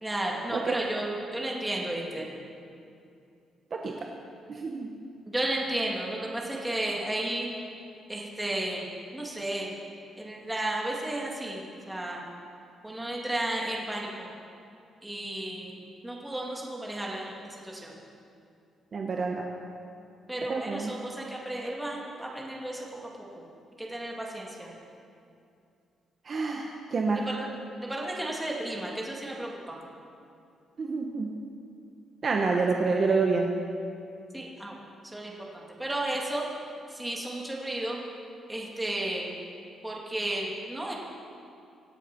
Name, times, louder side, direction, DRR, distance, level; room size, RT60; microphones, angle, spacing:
voice 1, 0.0-2.3 5.3-7.5 8.1-9.7 10.2-12.3 12.8-14.3 15.0-18.0 20.3-23.1 23.8-24.7 27.1-29.8 34.3-34.8 35.0-36.5 36.9-38.0 38.5-39.3 39.8-40.9, right 1 dB, 5° right, -3 dB, 2.2 m, -33 dB
voice 2, 4.5-4.9 18.9-19.4 20.5-21.0 26.2-27.2 30.8-31.3 32.2-33.5, right 4 dB, 35° right, 0 dB, 1.1 m, -27 dB
24.5 x 8.2 x 6.0 m, 2.5 s
cardioid pair, 160°, 0 cm